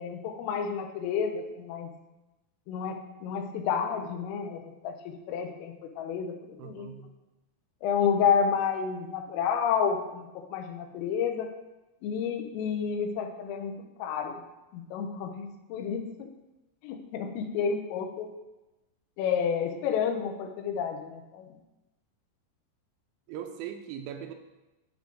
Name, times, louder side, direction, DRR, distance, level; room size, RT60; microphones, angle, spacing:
voice 1, 0.0-1.9 2.7-6.9 7.8-11.5 12.0-13.7 14.0-14.4 14.7-16.3 16.8-18.3 19.2-21.5, left 7 dB, 85° left, 6 dB, 3.5 m, -30 dB
voice 2, 6.6-7.1 9.3-9.4 23.3-24.3, right 9 dB, 85° right, 6 dB, 2.9 m, -40 dB
9.3 x 7.2 x 3.8 m, 1.0 s
omnidirectional pair, 5.7 m